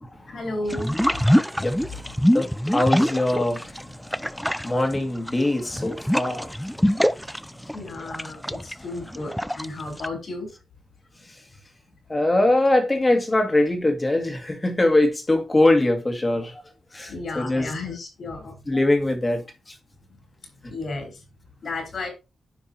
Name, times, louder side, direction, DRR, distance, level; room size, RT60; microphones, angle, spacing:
voice 1, 0.3-1.1 7.7-10.5 17.1-18.5 20.7-21.2 21.6-22.1, left 2 dB, 65° left, 3.9 m, -33 dB
sound 1, 0.7-3.8 4.1-10.1, equal, ahead, 0.4 m, -24 dB
voice 2, 1.6-2.0 2.3-3.9 4.2-4.3 4.6-6.7 12.1-16.6 16.9-17.7 18.7-19.4, left 2 dB, 25° left, 2.1 m, -22 dB
9.7 x 5.2 x 2.8 m
cardioid pair, 60°, 0 cm